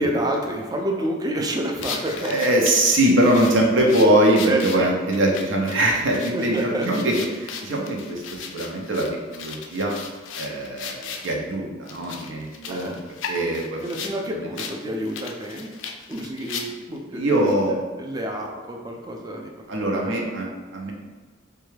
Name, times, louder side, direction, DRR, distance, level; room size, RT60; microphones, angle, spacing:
voice 1, 0.0-2.4 4.5-4.9 6.3-6.9 12.7-13.0 13.8-15.7 16.1-17.5 18.0-20.3, right 1 dB, 20° right, 1 dB, 0.3 m, -29 dB
sound 1, 1.8-11.4 11.9-14.2 14.6-14.8 15.0-17.0, left 6 dB, 75° left, 0.3 m, -36 dB
voice 2, 2.2-9.9 10.4-12.9 13.3-13.9 14.3-14.4 17.1-17.9 19.7-20.9, right 1 dB, 85° right, -1 dB, 0.6 m, -22 dB
3.2 x 2.2 x 3.2 m, 1.3 s
head